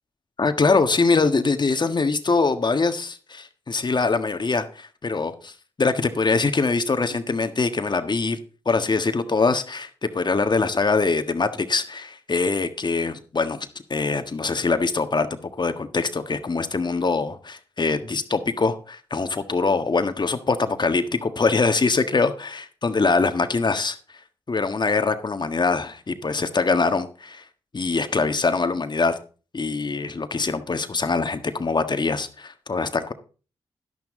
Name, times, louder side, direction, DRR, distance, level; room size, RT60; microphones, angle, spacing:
voice 1, 0.4-5.5 5.8-8.4 8.6-15.3 15.6-24.0 24.5-27.4 27.7-29.2 29.5-33.1, left 4 dB, 45° left, 9 dB, 1.5 m, -23 dB
11.5 x 11.0 x 3.8 m, 0.36 s
supercardioid pair, 40°, 11 cm